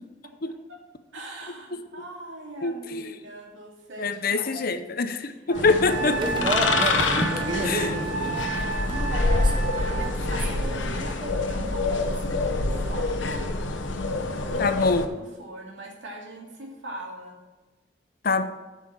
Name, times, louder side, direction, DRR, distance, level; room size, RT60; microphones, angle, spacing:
voice 1, 1.1-4.8 5.6-7.2 7.7-8.9 10.0-13.4 14.1-14.8 15.2-17.4, right 1 dB, 85° right, -1 dB, 2.4 m, -41 dB
voice 2, 2.6-3.1 4.0-6.1 7.2-7.3 7.6-8.0 14.6-15.1 18.2-18.4, left 4 dB, 50° left, 10 dB, 0.6 m, -24 dB
sound 1, 5.5-15.0, right 1 dB, 25° right, 0.9 m, -33 dB
sound 2, 5.6-15.1, left 3 dB, 75° left, 0.9 m, -27 dB
Wind instrument woodwind instrument, 5.8-10.1, right 5 dB, 50° right, 2.3 m, -32 dB
8.3 x 5.7 x 7.3 m, 1.2 s
head